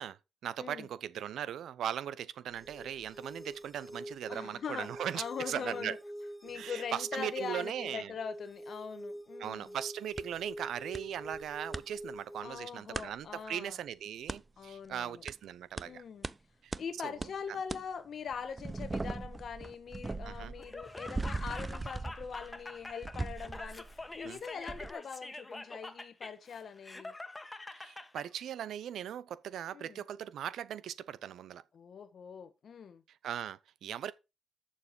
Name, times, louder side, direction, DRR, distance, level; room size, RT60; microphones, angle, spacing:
voice 1, 0.0-5.9 6.5-8.1 9.4-16.0 16.6-16.7 17.0-17.1 20.2-20.5 24.2-24.4 27.7-31.6 33.2-34.1, right 10 dB, 80° right, 0.7 m, -39 dB
voice 2, 0.6-0.9 4.3-6.0 6.4-9.7 12.4-13.8 14.6-15.2 15.8-16.3 16.8-27.1 29.7-30.0 31.7-33.0, left 6 dB, 65° left, 1.3 m, -42 dB
sound 1, 2.5-12.5, equal, 5° right, 1.6 m, -46 dB
sound 2, 10.2-10.3 10.9-11.0 11.3-11.8 12.9-13.1 14.3-14.4 15.3-15.4 15.8-15.9 16.2-16.4 16.7-16.8 17.2-17.3 17.7-17.8 18.3-24.3 24.7-24.9, right 3 dB, 30° right, 0.6 m, -39 dB
Laughter, 20.6-28.3, left 2 dB, 25° left, 1.4 m, -46 dB
7.2 x 6.9 x 4.8 m
supercardioid pair, 45°, 0 cm